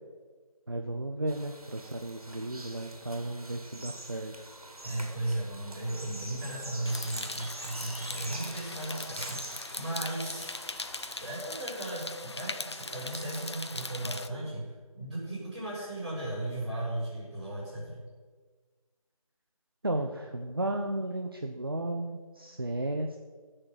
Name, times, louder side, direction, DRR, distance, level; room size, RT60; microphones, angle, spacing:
voice 1, 0.7-4.3 19.8-23.2, right 1 dB, 40° right, 4 dB, 0.6 m, -34 dB
sound 1, 1.3-11.4, right 1 dB, 85° right, 2.3 m, -45 dB
voice 2, 4.8-10.5 11.2-18.0, right 1 dB, 15° right, -13 dB, 4.4 m, -36 dB
sound 2, 6.9-14.3, left 2 dB, 50° left, 0.5 m, -40 dB
14.5 x 6.7 x 5.6 m, 1.4 s
figure-of-eight pair, 175°, 18 cm